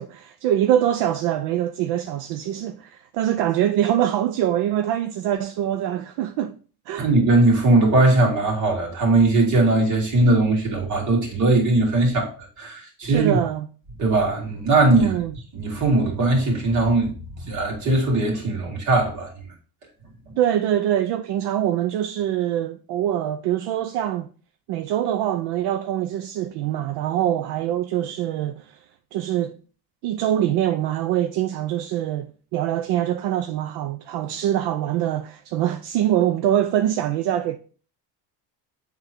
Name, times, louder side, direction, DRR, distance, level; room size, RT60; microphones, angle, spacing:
voice 1, 0.0-6.6 6.9-7.1 13.0-13.7 15.0-15.4 20.4-24.3 24.7-28.8 29.1-29.6 30.0-37.6, right 11 dB, 75° right, 0.6 m, -24 dB
voice 2, 7.0-12.3 12.6-13.4 14.0-15.1 15.5-17.1 17.4-19.3 20.3-20.4, right 2 dB, 45° right, 2.5 m, -19 dB
7.8 x 3.7 x 4.5 m
cardioid pair, 165°, 40 cm